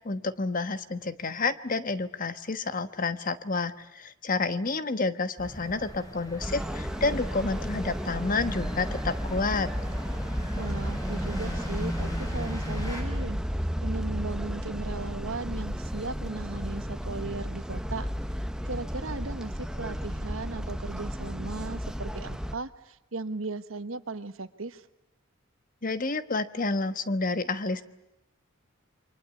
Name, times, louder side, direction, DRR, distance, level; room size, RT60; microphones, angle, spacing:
voice 1, 0.0-9.7 25.8-27.8, left 3 dB, 40° left, 11 dB, 1.2 m, -29 dB
sound 1, 5.4-13.0, left 1 dB, 20° left, 6.5 m, -39 dB
sound 2, 6.4-22.6, equal, 5° right, 0.9 m, -33 dB
voice 2, 10.6-13.4 13.8-18.1 18.6-24.9, right 3 dB, 70° right, 12 dB, 1.3 m, -37 dB
29.0 x 24.5 x 8.4 m, 0.91 s
head